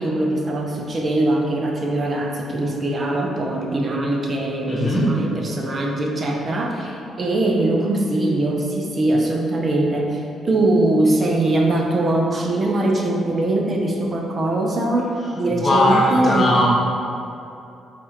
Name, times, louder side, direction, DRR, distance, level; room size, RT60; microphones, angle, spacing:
voice 1, 0.0-16.7, right 1 dB, 40° right, 0 dB, 0.5 m, -22 dB
voice 2, 4.7-5.2 15.5-16.7, left 1 dB, 35° left, -4 dB, 1.0 m, -18 dB
7.3 x 2.5 x 2.8 m, 2.7 s
cardioid pair, 90°, 0 cm